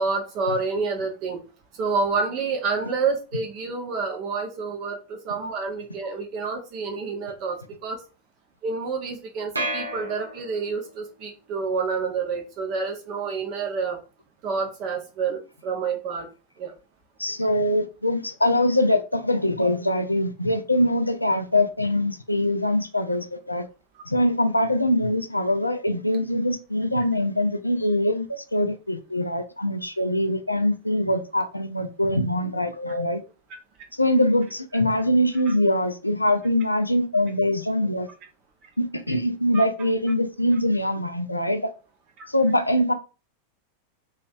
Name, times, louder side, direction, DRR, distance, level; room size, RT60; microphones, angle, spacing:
voice 1, 0.0-1.4 1.7-8.0 8.6-14.0 14.4-16.3 16.6-16.7 39.5-39.6 42.2-42.3, right 4 dB, 40° right, 0.7 m, -28 dB
sound 1, 9.6-10.9, right 1 dB, 80° right, 0.6 m, -31 dB
voice 2, 17.2-23.7 24.1-33.2 33.9-38.1 38.8-41.7 42.3-42.9, left 1 dB, 85° left, 0.4 m, -23 dB
3.1 x 3.0 x 2.4 m
figure-of-eight pair, 90°, 0 cm